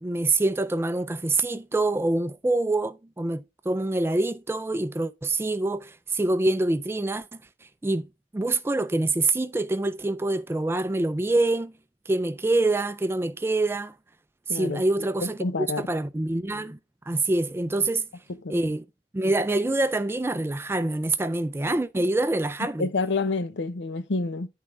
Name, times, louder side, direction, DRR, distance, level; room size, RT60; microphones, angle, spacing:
voice 1, 0.0-7.3 7.8-8.1 8.3-11.7 12.1-13.9 14.5-16.8 17.1-18.1 18.5-18.9 19.1-22.9, right 2 dB, 15° right, 0.3 m, -25 dB
voice 2, 14.5-15.9 18.4-18.6 22.8-24.5, left 3 dB, 85° left, 0.7 m, -28 dB
10.5 x 3.7 x 4.6 m
head